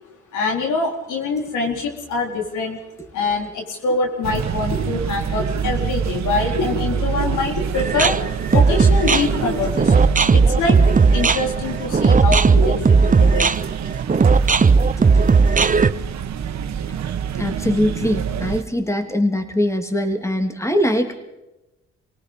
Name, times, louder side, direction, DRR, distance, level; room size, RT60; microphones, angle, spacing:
voice 1, 0.3-2.8 3.1-8.2 8.5-13.5, left 3 dB, 80° left, 1 dB, 4.3 m, -24 dB
sound 1, 4.2-18.6, right 8 dB, 65° right, 1.5 m, -27 dB
sound 2, 7.7-15.9, right 4 dB, 25° right, 0.9 m, -15 dB
voice 2, 17.4-21.2, left 1 dB, 10° left, 6 dB, 3.2 m, -22 dB
28.5 x 18.0 x 5.5 m, 0.96 s
supercardioid pair, 60°, 30 cm